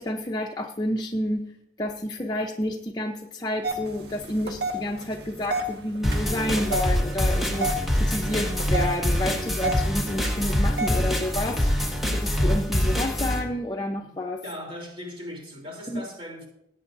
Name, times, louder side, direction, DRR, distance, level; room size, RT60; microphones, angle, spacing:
voice 1, 0.0-1.5 1.8-11.7 12.1-14.4 15.9-16.0, left 1 dB, 25° left, 0.7 m, -30 dB
sound 1, 3.6-11.9, right 1 dB, 70° right, 1.5 m, -33 dB
sound 2, 6.0-13.4, equal, ahead, 1.6 m, -25 dB
voice 2, 14.4-16.5, left 1 dB, 30° right, 3.3 m, -38 dB
17.5 x 9.0 x 2.6 m
head